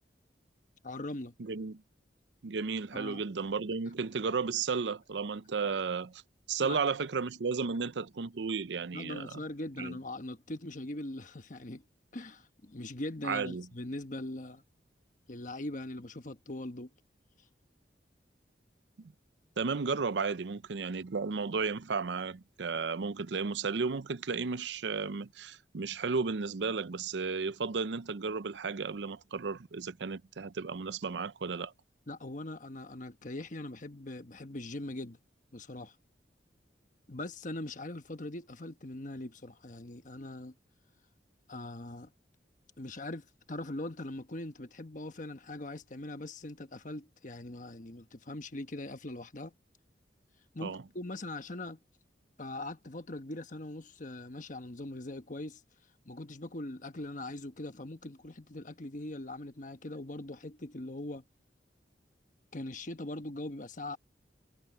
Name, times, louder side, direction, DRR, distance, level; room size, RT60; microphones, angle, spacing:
voice 1, 0.8-1.3 2.9-3.2 6.6-6.8 8.9-11.8 12.1-14.6 15.3-16.9 32.1-35.2 35.5-35.9 37.1-40.5 41.5-42.1 42.8-49.5 50.5-51.8 52.4-55.6 56.1-61.2 62.5-64.0, left 1 dB, 45° left, 1.2 m, -41 dB
voice 2, 1.4-1.8 2.4-6.2 6.5-9.4 9.8-10.0 13.2-13.7 19.0-19.1 19.6-31.7 50.6-50.8, right 5 dB, 75° right, 0.6 m, -34 dB
head